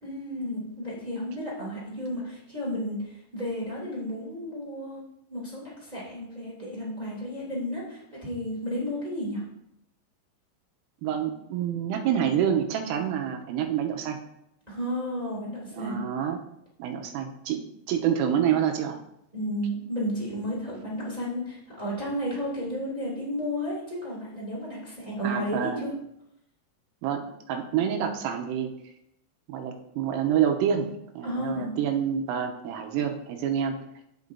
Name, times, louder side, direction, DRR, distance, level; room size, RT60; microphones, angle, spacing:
voice 1, 0.0-5.0 5.3-9.4 14.7-16.0 19.3-25.9 31.2-31.7, equal, 60° right, -7 dB, 0.4 m, -32 dB
voice 2, 11.0-14.2 15.7-16.5 16.8-19.0 25.2-25.9 27.0-28.7 29.5-30.9 31.2-33.8, right 9 dB, 85° right, 4 dB, 3.3 m, -27 dB
16.0 x 5.5 x 2.7 m, 0.79 s
omnidirectional pair, 6.0 m